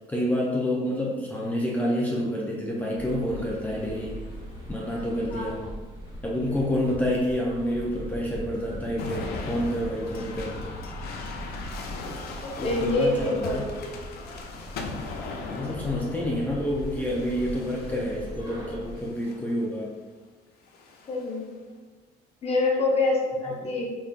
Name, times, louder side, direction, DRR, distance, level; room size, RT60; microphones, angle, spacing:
voice 1, 0.1-4.2 4.7-5.6 6.2-10.6 12.6-13.6 15.5-19.9 23.6-23.7, left 1 dB, 10° left, -5 dB, 0.5 m, -28 dB
sound 1, 3.0-19.1, equal, 30° right, 1.5 m, -40 dB
sound 2, 9.0-18.3 19.0-19.6 20.7-21.3, left 3 dB, 65° left, 0.5 m, -38 dB
voice 2, 12.4-13.9 21.1-21.5 22.4-23.9, left 2 dB, 35° left, -1 dB, 0.8 m, -26 dB
3.7 x 3.3 x 2.4 m, 1.3 s
cardioid pair, 110°, 17 cm